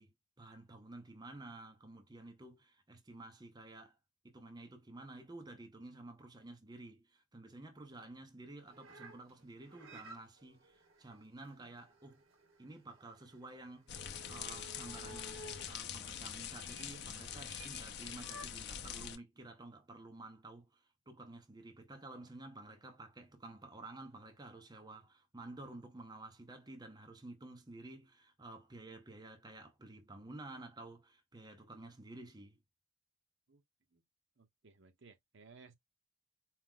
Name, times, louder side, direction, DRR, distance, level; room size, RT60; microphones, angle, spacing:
voice 1, 0.0-4.0 4.2-12.2 12.6-32.6, right 2 dB, 20° right, 0.6 m, -52 dB
sound 1, 8.7-15.7 16.4-16.9 17.4-17.9 18.2-18.5, right 1 dB, 75° right, 1.2 m, -55 dB
sound 2, 13.9-19.2, left 8 dB, 50° left, 0.6 m, -44 dB
voice 2, 34.4-35.7, right 4 dB, 55° right, 0.8 m, -60 dB
4.5 x 2.0 x 3.7 m
head